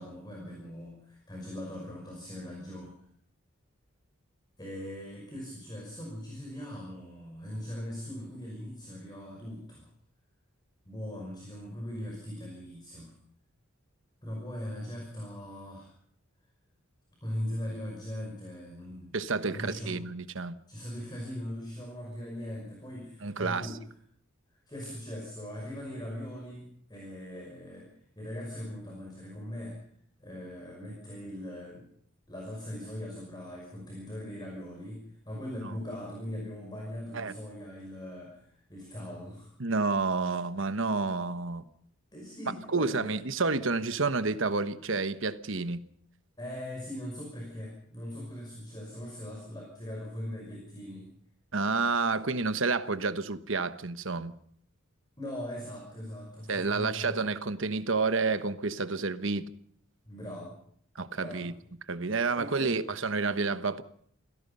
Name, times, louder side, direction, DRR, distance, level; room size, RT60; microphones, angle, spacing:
voice 1, 0.0-3.0 4.6-9.9 10.8-13.1 14.2-15.9 17.2-19.2 19.5-20.1 20.7-23.8 24.7-29.8 30.2-31.9 32.3-39.5 42.1-43.2 46.4-51.1 55.2-57.2 60.1-60.6 61.2-61.5 62.3-62.8, left 1 dB, 20° left, 5.6 m, -40 dB
voice 2, 19.1-20.5 23.2-23.7 35.6-35.7 37.1-37.3 39.6-41.6 42.7-45.8 51.5-54.3 56.5-59.5 60.9-61.5 61.9-63.8, right 4 dB, 65° right, 1.2 m, -29 dB
28.0 x 17.0 x 5.5 m
head